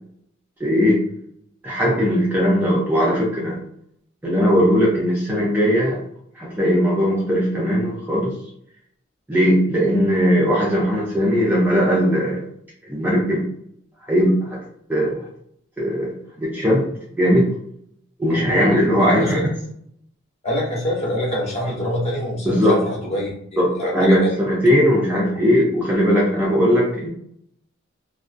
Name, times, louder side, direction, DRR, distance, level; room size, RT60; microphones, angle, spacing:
voice 1, 0.6-1.0 1.6-3.6 4.2-6.0 6.4-8.3 9.3-12.4 12.9-13.4 14.1-14.6 14.9-15.2 15.8-17.5 18.2-19.5 22.5-22.8 23.6-27.1, equal, 10° right, -6 dB, 0.4 m, -19 dB
voice 2, 19.0-19.4 20.4-24.3, left 1 dB, 30° left, -5 dB, 0.9 m, -25 dB
2.4 x 2.3 x 2.4 m, 0.70 s
head